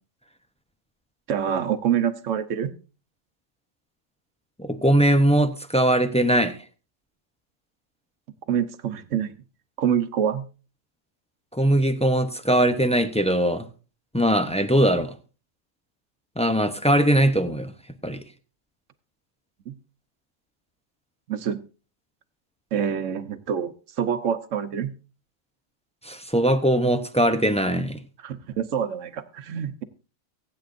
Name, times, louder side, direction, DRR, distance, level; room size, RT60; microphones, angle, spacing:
voice 1, 1.3-2.7 8.5-9.3 9.8-10.4 19.7-19.8 21.3-21.6 22.7-24.9 28.2-29.8, right 8 dB, 75° right, 1.2 m, -26 dB
voice 2, 4.6-6.6 11.5-13.7 14.1-15.1 16.4-17.7 18.0-18.2 26.0-28.0, right 1 dB, 10° left, 0.5 m, -21 dB
23.5 x 8.4 x 2.6 m
omnidirectional pair, 1.3 m